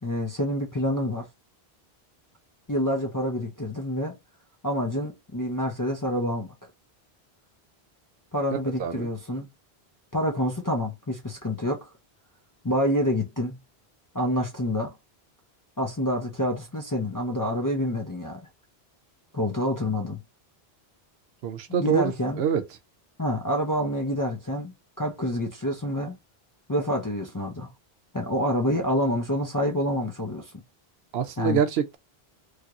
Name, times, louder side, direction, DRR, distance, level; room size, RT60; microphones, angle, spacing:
voice 1, 0.0-1.3 2.7-4.2 4.6-6.5 8.3-9.5 10.1-11.9 12.6-13.6 14.1-14.9 15.8-18.4 19.3-20.2 21.7-22.4 23.2-26.2 26.7-27.7 28.1-30.5 31.4-31.6, left 1 dB, 25° left, 0.4 m, -27 dB
voice 2, 21.4-22.0 22.4-22.6 31.1-32.0, right 8 dB, 80° right, 0.8 m, -25 dB
3.2 x 2.8 x 2.4 m
omnidirectional pair, 1.1 m